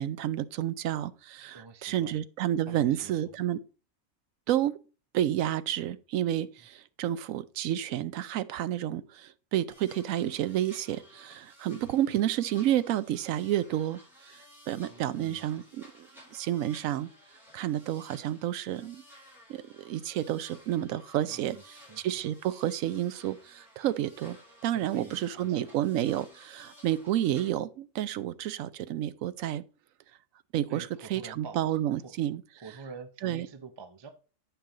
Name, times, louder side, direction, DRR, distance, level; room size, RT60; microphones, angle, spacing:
voice 1, 0.0-3.6 4.5-4.8 5.1-14.0 14.3-14.4 14.7-17.1 17.5-19.0 19.5-24.4 24.6-29.6 30.5-32.4 33.2-33.5, right 12 dB, 85° right, 1.0 m, -30 dB
voice 2, 1.5-2.2 2.7-3.3 6.6-6.7 14.9-15.4 21.2-22.2 24.7-25.7 30.7-31.8 32.0-32.1 32.6-34.1, right 4 dB, 30° right, 0.6 m, -47 dB
sound 1, 9.7-27.5, left 1 dB, ahead, 4.1 m, -55 dB
8.8 x 5.6 x 3.8 m
omnidirectional pair, 1.4 m